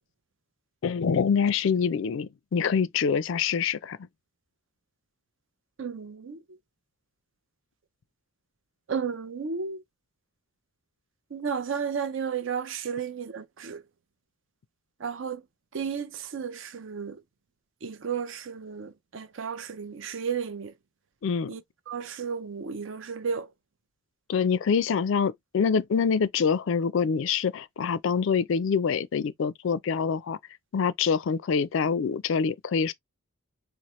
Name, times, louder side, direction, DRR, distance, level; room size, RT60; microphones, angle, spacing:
voice 1, 0.8-4.0 21.2-21.5 24.3-30.4 30.7-32.9, left 6 dB, 60° left, 0.3 m, -25 dB
voice 2, 5.8-6.4 8.9-9.8 11.3-13.8 15.0-15.4 15.7-17.2 17.8-20.7 21.5-21.6 21.9-23.5, right 6 dB, 60° right, 0.5 m, -33 dB
4.2 x 2.0 x 3.0 m
head